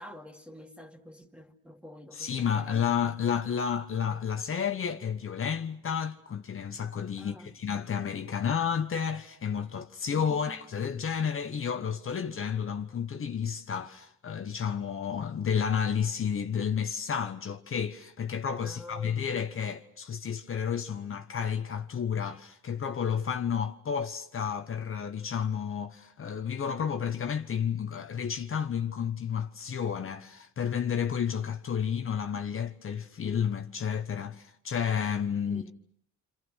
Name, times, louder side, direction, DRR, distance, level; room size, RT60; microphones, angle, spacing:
voice 1, 0.0-2.9 7.2-7.5 10.1-10.6 18.6-19.2 35.4-35.7, left 1 dB, 5° right, 2.4 m, -48 dB
voice 2, 2.1-35.6, left 7 dB, 45° left, 1.2 m, -31 dB
29.0 x 26.0 x 6.4 m
cardioid pair, 90°, 30 cm